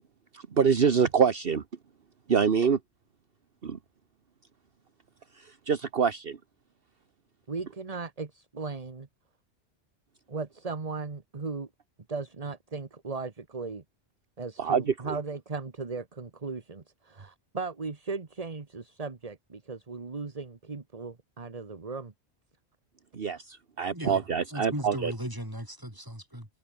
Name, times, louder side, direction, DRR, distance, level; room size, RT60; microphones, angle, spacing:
voice 1, 0.3-1.6 2.3-2.8 3.6-3.8 5.4-6.4 14.6-15.1 23.1-25.1, right 6 dB, 55° right, 1.4 m, -25 dB
voice 2, 7.5-9.1 10.3-11.7 12.1-13.8 14.4-22.1, right 4 dB, 35° right, 1.4 m, -37 dB
voice 3, 23.9-24.2 24.5-26.5, equal, 20° right, 6.8 m, -37 dB
omnidirectional pair, 1.1 m